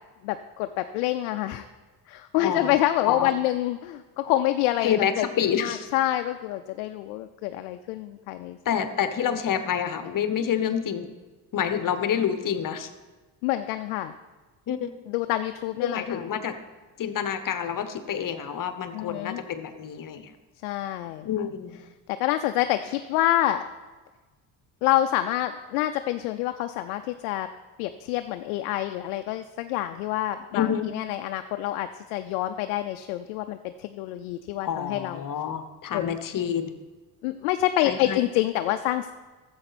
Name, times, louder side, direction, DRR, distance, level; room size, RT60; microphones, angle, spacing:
voice 1, 0.2-1.7 2.1-5.3 5.6-8.6 13.4-14.1 15.1-16.2 18.9-19.4 20.6-21.3 22.2-23.6 24.8-27.5 27.8-35.2 35.9-36.2 37.2-39.1, left 14 dB, 85° left, 8 dB, 0.5 m, -27 dB
voice 2, 2.4-2.7 3.1-3.3 4.8-5.9 8.6-11.1 11.5-12.9 14.7-14.9 15.8-16.6 17.0-20.3 21.2-21.8 30.5-30.9 34.6-36.8 37.8-38.2, left 8 dB, 50° left, 10 dB, 1.1 m, -28 dB
12.5 x 7.8 x 4.1 m, 1.3 s
supercardioid pair, 70°, 43 cm